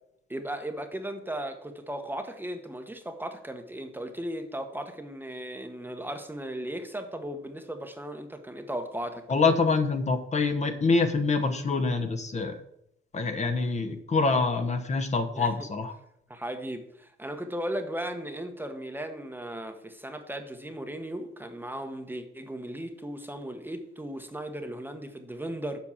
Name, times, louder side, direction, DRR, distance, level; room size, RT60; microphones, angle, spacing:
voice 1, 0.3-9.3 15.3-15.5 16.3-25.8, right 1 dB, 10° right, 1.1 m, -36 dB
voice 2, 9.3-12.6 13.1-15.9, left 4 dB, 35° left, 1.1 m, -25 dB
7.4 x 5.2 x 7.3 m
cardioid pair, 90°, 20 cm